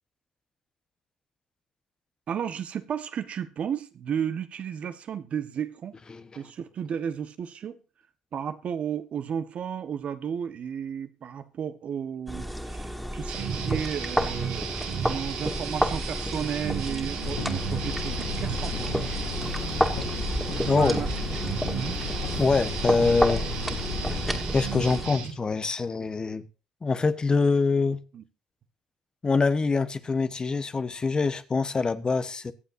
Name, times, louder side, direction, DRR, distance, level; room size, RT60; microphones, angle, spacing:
voice 1, 2.3-5.9 6.4-7.8 8.3-14.7 15.1-18.9 20.7-21.1 21.7-22.0 28.1-28.2, right 8 dB, 55° right, 1.3 m, -33 dB
sound 1, 12.3-25.1, equal, ahead, 2.7 m, -31 dB
sound 2, 13.3-25.3, right 7 dB, 85° right, 2.7 m, -34 dB
sound 3, 17.2-24.4, left 6 dB, 80° left, 7.5 m, -34 dB
voice 2, 20.6-21.0 22.4-23.4 24.5-26.4 26.8-28.0 29.2-32.5, left 4 dB, 30° left, 1.1 m, -24 dB
24.0 x 8.0 x 2.7 m
hypercardioid pair, 60°, 3 cm